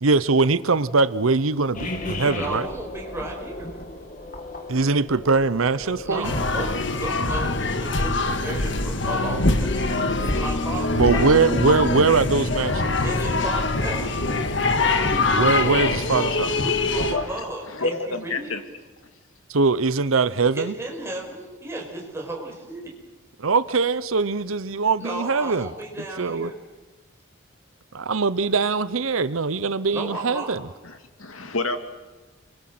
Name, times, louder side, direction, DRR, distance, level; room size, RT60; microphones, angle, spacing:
voice 1, 0.0-2.7 4.7-6.3 10.9-13.0 15.3-16.5 19.5-20.7 23.4-25.7 26.2-26.5 27.9-30.6, right 4 dB, 85° right, 16 dB, 0.8 m, -22 dB
sound 1, 1.7-16.7, left 1 dB, 40° left, 2.6 m, -38 dB
voice 2, 2.4-3.7 6.0-9.8 10.2-11.4 13.0-14.3 16.1-16.2 16.5-18.5 20.5-22.9 25.0-26.6 29.9-30.6, right 2 dB, 10° right, -1 dB, 5.8 m, -34 dB
sound 2, 6.2-17.1, left 2 dB, 60° left, 1.8 m, -23 dB
voice 3, 17.1-17.4 17.7-18.6 30.8-31.8, left 2 dB, 90° left, 7 dB, 2.4 m, -28 dB
29.5 x 23.5 x 7.8 m, 1.3 s
head